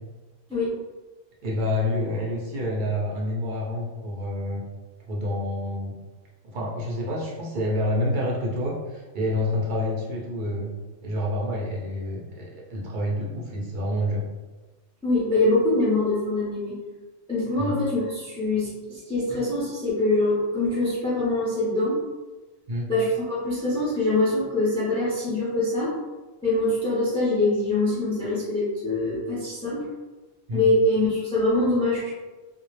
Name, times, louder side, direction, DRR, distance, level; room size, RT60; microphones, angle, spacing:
voice 1, 1.4-4.6 5.0-6.0 6.4-10.7 11.0-14.3 17.6-17.8 22.7-22.9 30.5-30.7, left 1 dB, 55° right, -3 dB, 0.5 m, -28 dB
voice 2, 15.0-16.8 17.3-22.0 22.9-25.9 26.4-29.9 30.5-32.1, left 2 dB, 10° left, -8 dB, 0.3 m, -24 dB
2.2 x 2.0 x 3.0 m, 1.2 s
omnidirectional pair, 1.3 m